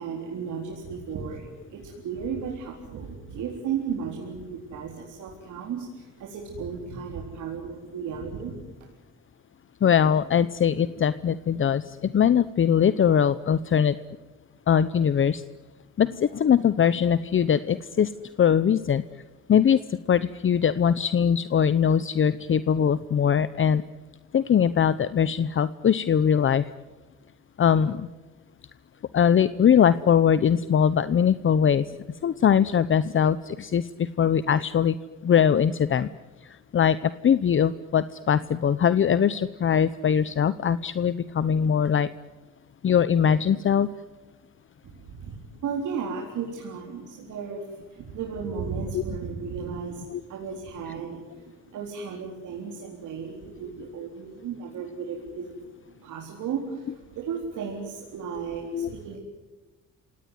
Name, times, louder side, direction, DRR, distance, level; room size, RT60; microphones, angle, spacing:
voice 1, 0.0-8.9 44.8-59.2, right 6 dB, 80° right, 0 dB, 4.0 m, -35 dB
voice 2, 9.8-14.0 14.7-15.4 16.0-18.1 18.4-19.0 19.5-23.8 24.3-26.7 27.6-28.1 29.1-31.9 32.2-35.0 35.2-36.1 36.4-42.1 42.8-43.9 48.9-49.0 50.1-50.2 50.9-51.0 56.9-57.0 58.7-58.9, left 8 dB, 40° left, 15 dB, 0.8 m, -21 dB
28.0 x 18.0 x 9.7 m, 1.2 s
cardioid pair, 90°, 30 cm